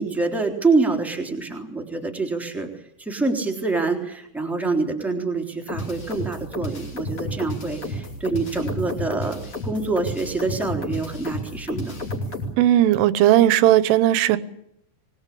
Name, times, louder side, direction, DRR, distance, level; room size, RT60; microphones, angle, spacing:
voice 1, 0.0-12.0, right 3 dB, ahead, 2 dB, 2.2 m, -26 dB
sound 1, 5.7-12.5, left 1 dB, 30° left, 5.3 m, -31 dB
voice 2, 12.6-14.4, right 13 dB, 80° right, 15 dB, 3.4 m, -16 dB
24.5 x 20.0 x 8.6 m, 0.77 s
omnidirectional pair, 5.9 m